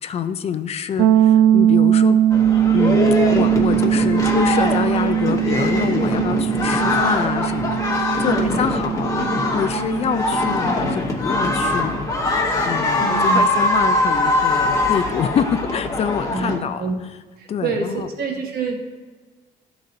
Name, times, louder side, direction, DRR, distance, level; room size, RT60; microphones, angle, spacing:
voice 1, 0.0-2.2 2.7-12.1 12.7-16.9 17.5-18.1, left 8 dB, 40° left, 11 dB, 0.4 m, -26 dB
sound 1, 1.0-10.7, right 10 dB, 80° right, 0.4 m, -19 dB
sound 2, 2.3-16.6, left 2 dB, 20° left, 1.0 m, -22 dB
voice 2, 8.2-8.6 13.0-13.5 16.3-17.0 17.4-18.8, right 4 dB, 65° right, 2 dB, 1.2 m, -26 dB
11.0 x 3.9 x 2.6 m, 1.4 s
cardioid pair, 110°, 17 cm